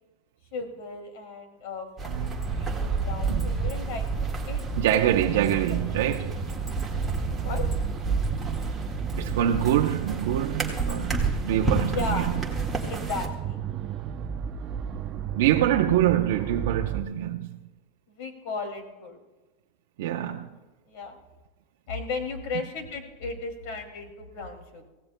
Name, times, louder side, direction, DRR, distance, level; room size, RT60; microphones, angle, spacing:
voice 1, 0.5-4.6 4.9-5.3 5.7-6.0 7.2-7.7 11.9-12.3 12.9-13.6 18.1-19.2 20.9-21.2 21.9-24.9, left 3 dB, 55° left, 2.4 m, -35 dB
sound 1, 2.0-13.3, right 3 dB, 5° right, 1.7 m, -30 dB
voice 2, 2.1-2.5 3.3-3.4 4.8-6.4 9.2-12.3 15.4-17.6 20.0-20.5, right 11 dB, 75° right, 0.7 m, -25 dB
sound 2, 2.4-17.0, right 8 dB, 30° right, 0.6 m, -34 dB
25.0 x 16.5 x 2.2 m
supercardioid pair, 160°, 0 cm